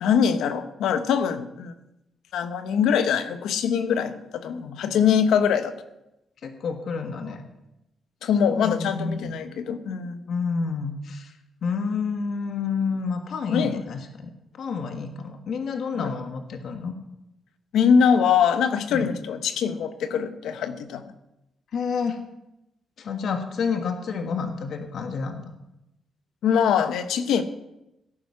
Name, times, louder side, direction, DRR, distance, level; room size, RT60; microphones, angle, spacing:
voice 1, 0.0-1.7 2.3-5.7 8.2-10.3 13.5-13.8 15.9-16.1 17.7-21.0 26.4-27.4, left 7 dB, 90° left, 10 dB, 1.0 m, -23 dB
voice 2, 6.4-7.5 8.2-9.4 10.3-11.4 11.6-14.3 14.5-16.9 18.9-19.1 21.7-22.2 23.0-25.5, left 5 dB, 65° left, 5 dB, 1.6 m, -29 dB
17.0 x 9.6 x 5.7 m, 0.90 s
cardioid pair, 95°, 0 cm